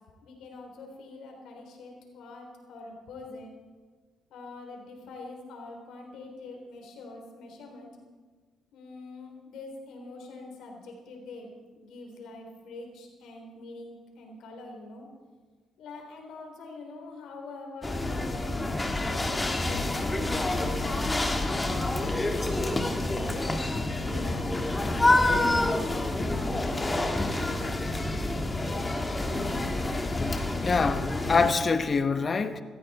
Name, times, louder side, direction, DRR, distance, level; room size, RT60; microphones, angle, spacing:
voice 1, 0.2-3.6 4.3-7.9 8.7-15.1 15.8-21.6 22.1-23.7 24.0-26.9 27.4-27.9, left 2 dB, 80° left, 3.5 m, -44 dB
sound 1, 17.8-31.5, left 2 dB, 20° left, 1.6 m, -28 dB
voice 2, 30.6-32.6, left 4 dB, 40° left, 1.0 m, -25 dB
17.5 x 14.0 x 4.2 m
cardioid pair, 90°, 0 cm